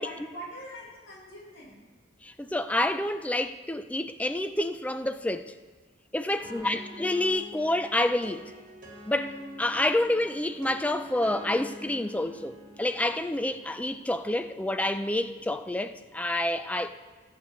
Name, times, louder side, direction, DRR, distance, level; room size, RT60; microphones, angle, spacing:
voice 1, 0.0-1.8 6.3-6.8, equal, 90° left, 4.2 m, -44 dB
voice 2, 2.2-5.5 6.1-8.5 9.1-16.9, left 1 dB, 5° left, 0.4 m, -28 dB
sound 1, 6.4-16.0, equal, 45° right, 2.1 m, -46 dB
20.5 x 8.3 x 3.2 m
head